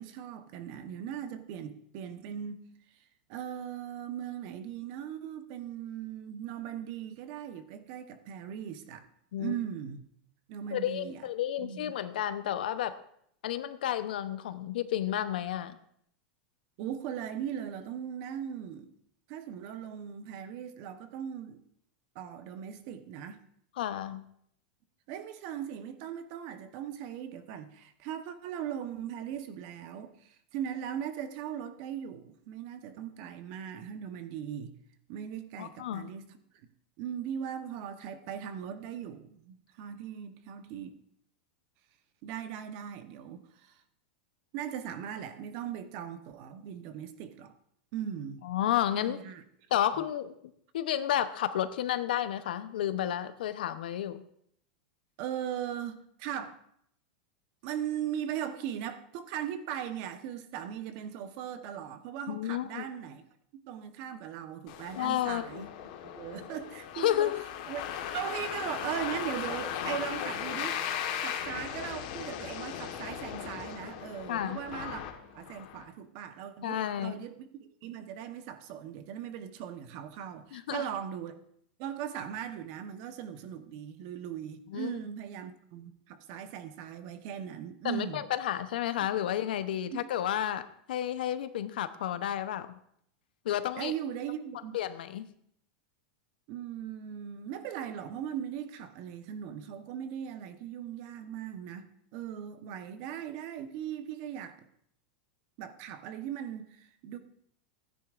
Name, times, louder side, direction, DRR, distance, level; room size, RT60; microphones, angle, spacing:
voice 1, 0.0-2.6 3.3-9.1 9.4-10.0 10.5-11.2 11.6-11.9 16.8-18.9 19.3-21.6 22.1-23.4 25.1-34.8 35.1-36.3 37.0-41.0 42.2-43.8 44.5-47.5 47.9-48.4 48.9-49.4 55.2-56.6 57.6-63.2 63.5-65.7 66.1-67.3 67.7-67.9 68.1-70.8 71.2-75.0 75.3-77.5 77.8-81.4 81.8-88.2 89.9-90.0 93.8-94.8 96.5-104.7 105.6-107.2, right 9 dB, 50° right, 1.0 m, -39 dB
voice 2, 10.7-13.0 13.4-15.8 23.8-24.2 35.6-36.1 48.4-49.2 49.7-50.4 50.7-54.2 62.3-62.9 64.9-65.7 66.9-67.4 74.3-74.6 76.6-77.2 80.5-80.8 84.7-84.9 87.8-92.8 93.4-93.9 94.7-95.3, left 11 dB, 80° left, 0.7 m, -31 dB
sound 1, 64.7-75.8, left 9 dB, 60° left, 1.4 m, -38 dB
15.5 x 9.9 x 2.5 m
supercardioid pair, 145°, 5 cm